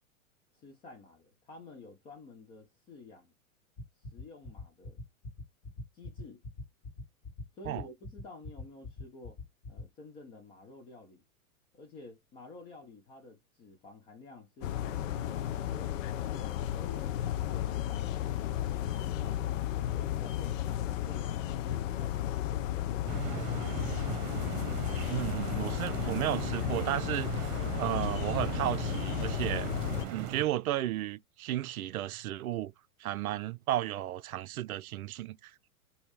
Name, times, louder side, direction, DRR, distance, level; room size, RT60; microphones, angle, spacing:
voice 1, 0.5-3.3 4.1-5.0 5.9-6.4 7.6-9.4 9.7-11.2 11.7-16.1 16.8-18.1 18.4-19.6 19.9-22.2, left 3 dB, 15° left, 0.3 m, -51 dB
sound 1, 3.8-9.8, left 2 dB, 30° left, 1.7 m, -42 dB
sound 2, 14.6-30.1, left 12 dB, 60° left, 0.6 m, -33 dB
sound 3, 23.1-30.4, right 10 dB, 40° right, 0.8 m, -38 dB
voice 2, 25.1-29.7 30.1-32.7 33.0-35.5, right 14 dB, 75° right, 0.5 m, -34 dB
2.8 x 2.7 x 3.9 m
hypercardioid pair, 115°, 43 cm